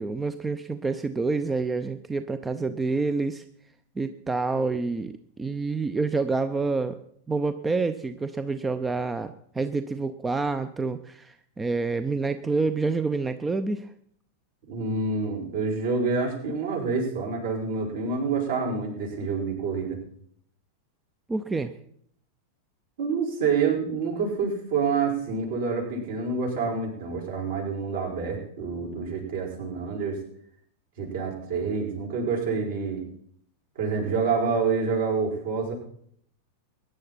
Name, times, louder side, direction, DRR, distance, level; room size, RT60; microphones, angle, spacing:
voice 1, 0.0-3.4 4.0-7.0 7.3-13.9 21.3-21.7, right 3 dB, 15° right, 11 dB, 0.7 m, -28 dB
voice 2, 14.7-20.0 23.0-30.2 31.0-33.0 33.7-35.7, right 5 dB, 60° right, 0 dB, 5.3 m, -27 dB
22.5 x 10.5 x 4.3 m, 0.65 s
figure-of-eight pair, 90°, 0 cm